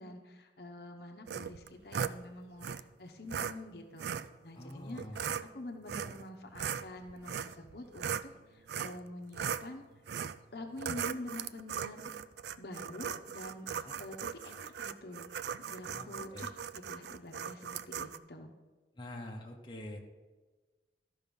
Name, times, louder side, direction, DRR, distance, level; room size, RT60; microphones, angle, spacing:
voice 1, 0.0-4.0 4.4-9.8 10.5-12.1 12.6-14.1 14.4-15.3 15.7-16.5 16.7-18.5, left 1 dB, 60° left, 4 dB, 0.9 m, -46 dB
sound 1, 1.3-2.2 2.6-2.8 3.3-3.5 4.0-4.3 5.0-5.4 5.9-6.2 6.5-8.3 8.7-9.0 9.3-9.7 10.1-10.4 10.8-18.2, right 7 dB, 70° right, 0.4 m, -38 dB
voice 2, 4.5-5.2 13.6-14.0 15.9-16.5 19.0-20.0, left 1 dB, 25° left, 0 dB, 1.0 m, -46 dB
12.5 x 5.6 x 5.4 m, 1.3 s
head